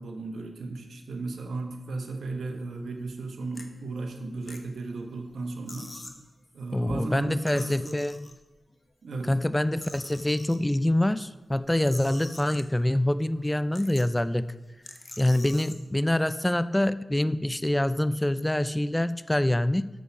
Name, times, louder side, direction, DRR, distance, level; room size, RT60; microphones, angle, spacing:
voice 1, 0.0-5.9 6.5-8.0 9.0-9.3, right 3 dB, 80° right, 4 dB, 1.1 m, -35 dB
sound 1, 2.9-3.1 3.5-3.7 4.2-5.0 5.3-5.4 5.7-6.2 7.3-8.6 9.2-10.6 11.5-12.9 13.3-13.4 13.7-14.3 14.8-15.8, left 2 dB, 40° left, 1.1 m, -45 dB
voice 2, 6.7-8.3 9.3-14.5 15.2-19.9, left 1 dB, 15° left, 15 dB, 0.3 m, -25 dB
7.1 x 6.4 x 5.8 m, 1.2 s
cardioid pair, 45°, 0 cm